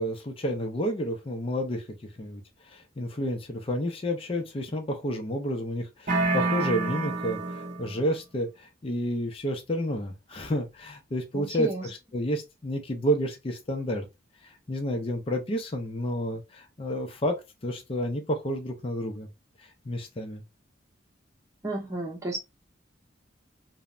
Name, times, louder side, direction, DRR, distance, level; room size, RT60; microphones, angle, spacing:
voice 1, 0.0-1.9 2.2-2.4 2.7-14.1 14.4-19.3 19.6-20.4, equal, 30° left, 0.5 m, -30 dB
sound 1, 6.1-8.0, right 3 dB, 40° right, 0.6 m, -27 dB
voice 2, 11.3-11.9 21.6-22.4, right 1 dB, 15° right, 0.8 m, -33 dB
3.1 x 2.0 x 2.4 m
head